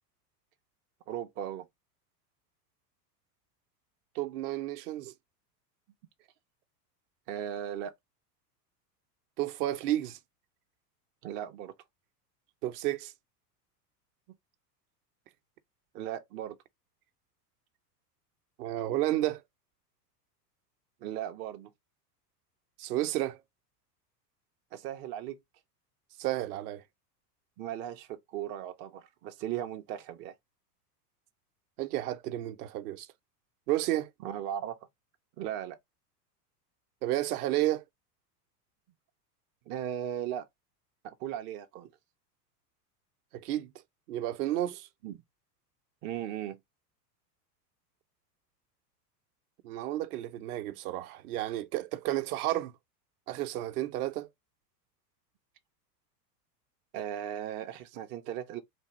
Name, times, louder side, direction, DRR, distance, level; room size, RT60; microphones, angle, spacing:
voice 1, 1.1-1.6 7.3-7.9 11.2-11.7 15.9-16.6 21.0-21.7 24.7-25.4 27.6-30.3 34.2-34.8 35.4-35.8 39.7-40.5 41.0-41.9 45.0-45.2 46.0-46.6 56.9-58.6, right 11 dB, 25° right, 0.3 m, -37 dB
voice 2, 4.1-5.1 9.4-10.2 12.6-13.1 18.6-19.4 22.8-23.4 26.2-26.8 31.8-33.1 33.7-34.1 37.0-37.8 43.3-43.7 44.1-44.9 49.6-52.7 53.3-54.3, right 14 dB, 65° right, 0.7 m, -31 dB
3.4 x 2.5 x 2.8 m
hypercardioid pair, 95°, 48 cm